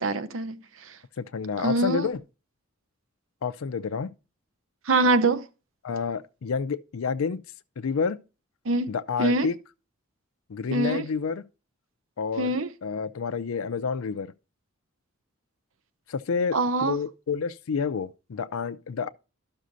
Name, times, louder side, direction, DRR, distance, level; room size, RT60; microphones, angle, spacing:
voice 1, 0.0-1.0 1.6-2.1 4.8-5.4 8.6-8.9 9.2-9.5 10.7-11.0 12.4-12.7 16.5-17.0, right 2 dB, 70° right, 0.7 m, -24 dB
voice 2, 1.2-2.2 3.4-4.1 5.8-7.4 7.8-8.2 8.9-9.6 10.5-11.4 12.2-12.5 12.8-14.3 16.1-19.1, left 5 dB, 85° left, 0.5 m, -29 dB
12.5 x 6.3 x 2.6 m
head